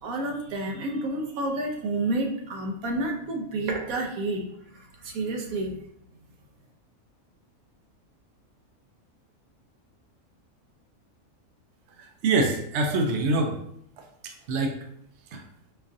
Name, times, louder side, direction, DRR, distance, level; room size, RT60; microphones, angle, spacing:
voice 1, 0.0-4.5 4.7-5.8, right 2 dB, 85° right, 2 dB, 1.1 m, -30 dB
voice 2, 12.0-13.6 14.5-14.8 15.3-15.4, right 2 dB, 65° right, 3 dB, 0.8 m, -25 dB
5.2 x 2.4 x 2.6 m, 0.70 s
omnidirectional pair, 1.4 m